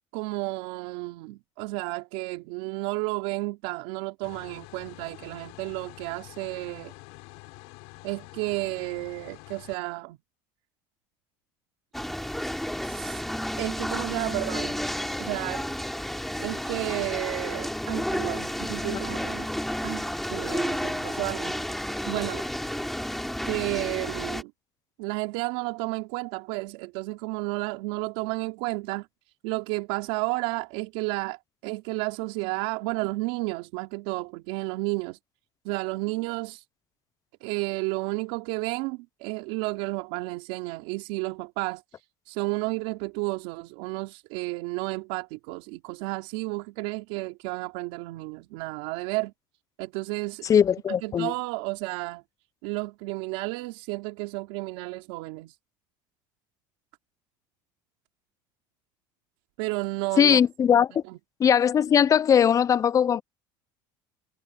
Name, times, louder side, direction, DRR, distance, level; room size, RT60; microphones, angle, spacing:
voice 1, 0.1-6.9 8.0-10.2 12.8-13.2 13.6-14.8 15.2-15.7 16.4-19.5 19.8-20.0 20.3-21.6 22.1-22.5 23.4-24.5 25.0-29.1 29.4-35.2 35.6-36.6 37.4-41.8 42.3-49.3 49.8-50.5 51.0-52.2 52.6-55.6 59.6-60.4 61.1-61.2, right 23 dB, 75° right, 3.6 m, -32 dB
sound 1, 4.2-9.8, left 26 dB, 75° left, 6.4 m, -47 dB
sound 2, 11.9-24.4, equal, ahead, 3.4 m, -31 dB
voice 2, 50.4-51.3 60.2-61.0 61.4-63.2, left 8 dB, 30° left, 0.5 m, -20 dB
supercardioid pair, 110°, 11 cm